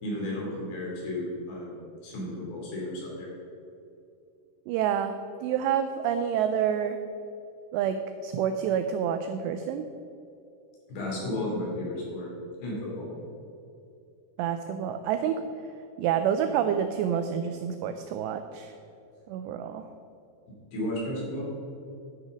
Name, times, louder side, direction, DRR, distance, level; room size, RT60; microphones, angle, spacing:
voice 1, 0.0-3.3 10.9-12.3 12.6-13.1 20.7-21.5, left 1 dB, 60° left, -4 dB, 4.6 m, -33 dB
voice 2, 4.7-5.1 5.4-7.0 7.7-9.9 14.4-15.5 16.0-18.7 19.3-19.9, right 8 dB, 85° right, 8 dB, 2.4 m, -28 dB
11.5 x 6.5 x 6.2 m, 2.6 s
omnidirectional pair, 5.4 m